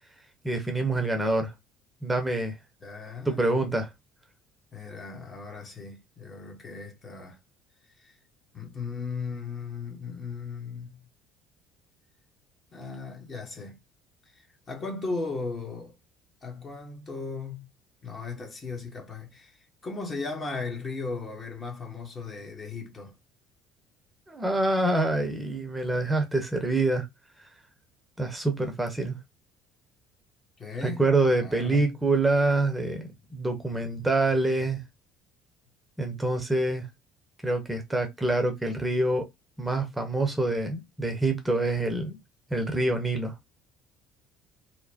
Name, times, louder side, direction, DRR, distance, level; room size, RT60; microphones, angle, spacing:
voice 1, 0.4-1.5 2.0-2.5 3.3-3.9 24.3-27.1 28.2-29.2 30.8-34.8 36.0-36.9 37.4-39.2 39.6-42.2 42.5-43.3, right 2 dB, 10° right, 0.7 m, -26 dB
voice 2, 2.8-3.4 4.7-7.4 8.0-8.1 8.5-11.1 12.7-13.8 14.3-16.0 16.4-17.7 18.0-23.1 30.6-31.1 31.4-32.0, left 4 dB, 35° left, 1.0 m, -37 dB
2.9 x 2.1 x 2.7 m
figure-of-eight pair, 55°, 0 cm